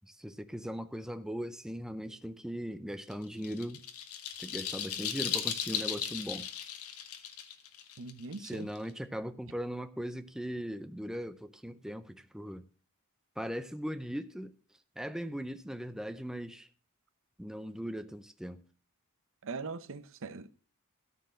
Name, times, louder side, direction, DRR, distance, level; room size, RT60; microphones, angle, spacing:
voice 1, 0.0-3.8 4.4-6.5 8.4-12.6 13.4-14.5 15.0-16.7 17.4-18.6, equal, 5° right, 0.5 m, -39 dB
sound 1, 3.1-8.9, left 9 dB, 80° left, 1.3 m, -37 dB
voice 2, 8.0-8.7 19.4-20.5, right 4 dB, 65° right, 0.7 m, -41 dB
13.5 x 4.6 x 7.5 m
head